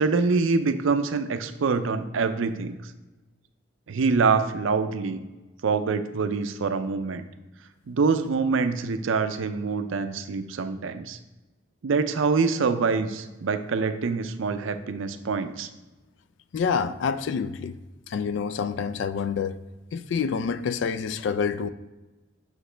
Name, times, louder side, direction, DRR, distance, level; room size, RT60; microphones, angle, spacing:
voice 1, 0.0-2.9 3.9-5.2 5.6-7.3 7.9-11.2 11.8-15.7, right 4 dB, 75° right, 0.5 m, -25 dB
voice 2, 16.5-17.8 18.1-19.6 19.9-21.7, left 6 dB, 65° left, 0.3 m, -27 dB
6.5 x 4.9 x 3.3 m
head